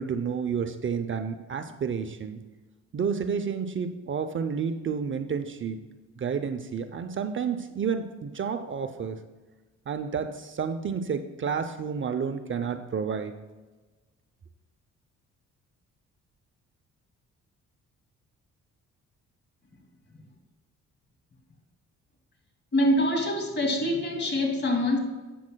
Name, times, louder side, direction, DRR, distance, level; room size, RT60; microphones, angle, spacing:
voice 1, 0.0-2.4 2.9-5.8 6.2-9.2 9.9-13.3, right 6 dB, 40° right, 8 dB, 0.7 m, -30 dB
voice 2, 22.7-25.0, left 1 dB, 35° left, 2 dB, 2.5 m, -25 dB
13.0 x 8.4 x 2.3 m, 1.2 s
cardioid pair, 90°, 30 cm